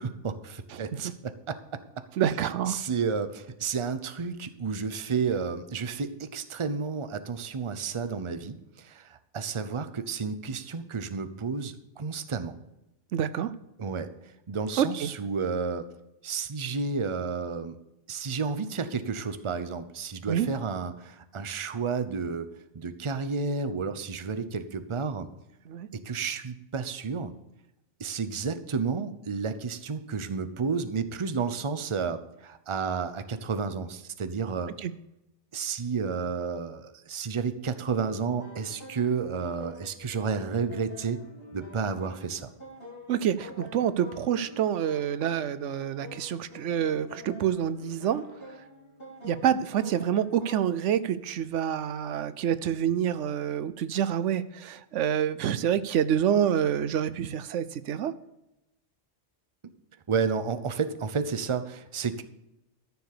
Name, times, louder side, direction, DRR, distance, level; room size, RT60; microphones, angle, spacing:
voice 1, 0.0-1.6 2.7-12.6 13.8-14.1 14.5-15.9 16.2-17.7 18.1-22.5 22.7-25.3 26.0-27.3 28.0-34.7 35.5-41.2 41.5-42.5 60.1-62.2, right 5 dB, 30° right, 11 dB, 0.7 m, -31 dB
voice 2, 0.7-1.0 2.2-2.8 13.1-13.5 14.8-15.1 20.3-20.5 25.7-25.9 34.8-34.9 43.1-48.3 48.5-48.6 49.2-58.1, right 9 dB, 85° right, 15 dB, 1.0 m, -27 dB
sound 1, 38.0-50.8, left 2 dB, 55° left, 3.1 m, -47 dB
13.5 x 7.0 x 6.7 m, 0.90 s
omnidirectional pair, 1.2 m